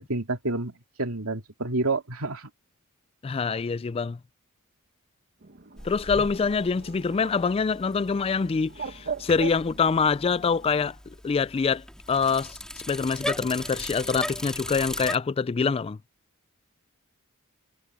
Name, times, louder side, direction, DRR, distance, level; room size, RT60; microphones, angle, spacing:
voice 1, 0.0-2.5, right 2 dB, 75° right, 2.8 m, -29 dB
voice 2, 3.2-4.2 5.8-11.0 11.2-12.6 12.9-16.0, left 5 dB, 25° left, 0.3 m, -25 dB
Bird, 5.4-10.9, right 6 dB, 45° right, 1.3 m, -41 dB
Bicycle, 5.8-15.2, left 1 dB, 5° left, 3.6 m, -38 dB
head